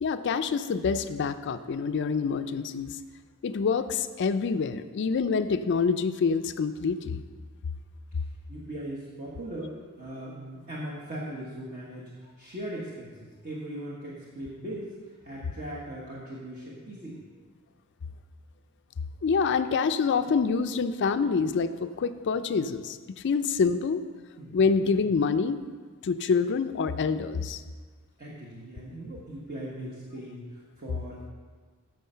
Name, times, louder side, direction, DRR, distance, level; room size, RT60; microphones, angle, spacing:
voice 1, 0.0-3.0 3.4-7.2 19.2-23.0 23.2-24.0 24.5-25.6 26.0-27.6, left 5 dB, 55° left, 10 dB, 0.4 m, -26 dB
voice 2, 8.5-14.9 15.2-17.3 24.4-24.9 28.2-31.3, right 1 dB, 45° right, -5 dB, 1.3 m, -39 dB
9.4 x 6.5 x 5.5 m, 1.5 s
head